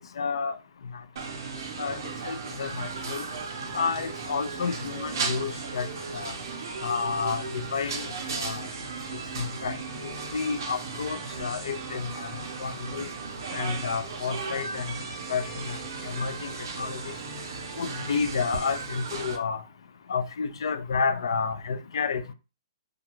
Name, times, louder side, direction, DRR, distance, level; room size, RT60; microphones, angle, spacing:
voice 1, 0.2-0.6 1.8-2.0 2.2-3.3 3.7-5.9 6.1-6.3 6.8-8.7 9.4-9.8 10.0-13.1 13.5-14.9 15.3-15.8 16.1-16.5 16.8-17.1 17.8-19.6 20.1-22.3, left 5 dB, 65° left, 0.4 m, -30 dB
sound 1, 1.2-19.4, right 4 dB, 40° right, 0.5 m, -36 dB
2.4 x 2.3 x 2.9 m
hypercardioid pair, 180°, 3 cm